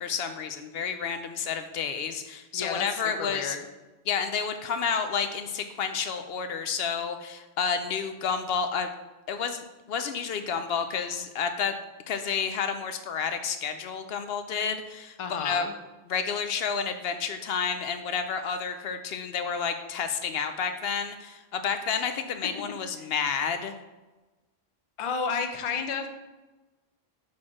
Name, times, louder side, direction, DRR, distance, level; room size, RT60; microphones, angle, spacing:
voice 1, 0.0-3.6 4.1-8.9 9.3-11.7 12.1-15.7 16.1-23.7, left 6 dB, 70° left, 8 dB, 0.8 m, -30 dB
voice 2, 2.5-3.6 15.2-15.7 22.0-22.1 25.0-26.1, left 6 dB, 40° left, 5 dB, 0.5 m, -31 dB
5.8 x 4.3 x 4.8 m, 1.1 s
omnidirectional pair, 1.1 m